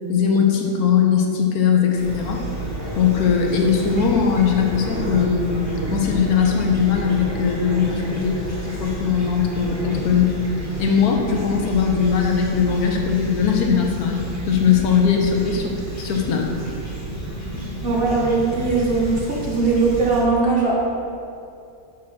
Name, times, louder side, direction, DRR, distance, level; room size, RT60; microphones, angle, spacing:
voice 1, 0.1-2.4 3.0-5.5 5.9-10.4 10.8-15.7 16.0-16.5, left 7 dB, 65° left, 1 dB, 1.2 m, -20 dB
Fowl / Chirp tweet, 2.0-20.2, right 1 dB, 10° left, 1.3 m, -30 dB
voice 2, 17.8-20.8, right 3 dB, 40° right, -3 dB, 0.9 m, -20 dB
6.3 x 4.3 x 6.1 m, 2.5 s
omnidirectional pair, 1.9 m